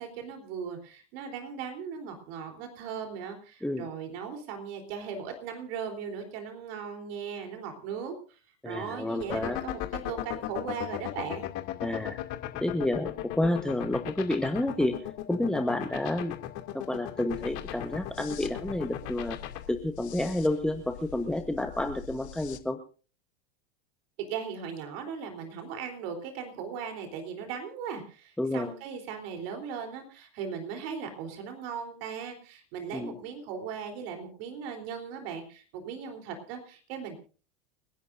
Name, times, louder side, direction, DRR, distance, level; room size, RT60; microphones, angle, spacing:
voice 1, 0.0-9.8 10.1-11.5 24.3-37.2, right 6 dB, 65° right, 5 dB, 3.8 m, -38 dB
voice 2, 8.6-9.6 11.8-12.2 12.6-14.9 15.3-16.4 16.7-19.4 19.7-22.8 28.4-28.7 32.9-33.1, left 1 dB, ahead, 6 dB, 1.1 m, -30 dB
sound 1, 9.2-19.6, left 15 dB, 55° left, 2.7 m, -35 dB
sound 2, 17.3-22.6, left 9 dB, 90° left, 1.2 m, -45 dB
29.5 x 11.0 x 2.6 m, 0.38 s
hypercardioid pair, 110°, 32 cm